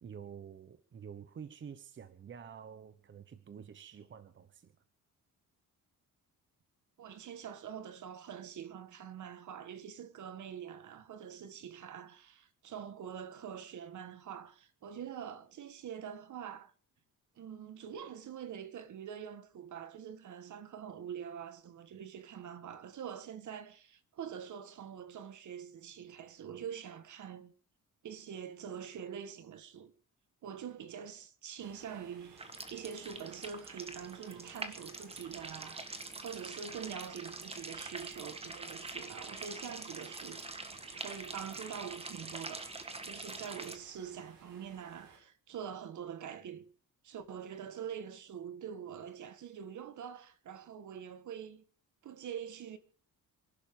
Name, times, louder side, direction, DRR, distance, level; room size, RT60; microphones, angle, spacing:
voice 1, 0.0-4.7, right 7 dB, 35° right, 1.0 m, -49 dB
voice 2, 7.0-16.7 17.4-27.5 28.0-29.9 30.4-40.4 40.9-46.6 47.0-51.6 52.0-52.8, right 8 dB, 60° right, 1.7 m, -45 dB
sound 1, 31.6-45.2, right 5 dB, 90° right, 5.5 m, -60 dB
sound 2, 32.4-43.8, right 3 dB, 15° right, 1.6 m, -45 dB
28.0 x 11.5 x 3.8 m
cardioid pair, 160°, 34 cm